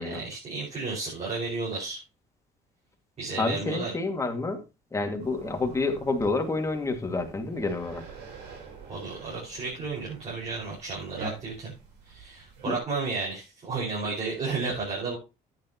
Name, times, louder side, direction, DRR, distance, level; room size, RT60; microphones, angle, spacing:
voice 1, 0.0-2.0 3.2-3.9 8.9-11.7 12.0-15.2, right 4 dB, 40° right, -5 dB, 5.5 m, -33 dB
voice 2, 3.4-4.6 4.9-8.1 12.6-12.8, left 3 dB, 15° left, 4 dB, 2.2 m, -29 dB
sound 1, 5.2-12.8, right 4 dB, 85° right, 4.2 m, -45 dB
10.5 x 9.5 x 3.0 m, 0.28 s
cardioid pair, 110°, 17 cm